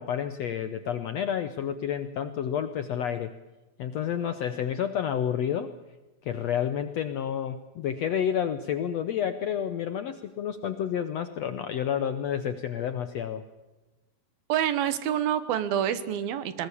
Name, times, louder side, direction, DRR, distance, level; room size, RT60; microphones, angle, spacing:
voice 1, 0.0-3.3 3.8-5.7 6.2-13.4, left 9 dB, 75° left, 11 dB, 1.6 m, -30 dB
voice 2, 14.5-16.7, right 10 dB, 80° right, 14 dB, 3.2 m, -27 dB
21.5 x 19.5 x 8.5 m, 1.1 s
omnidirectional pair, 4.2 m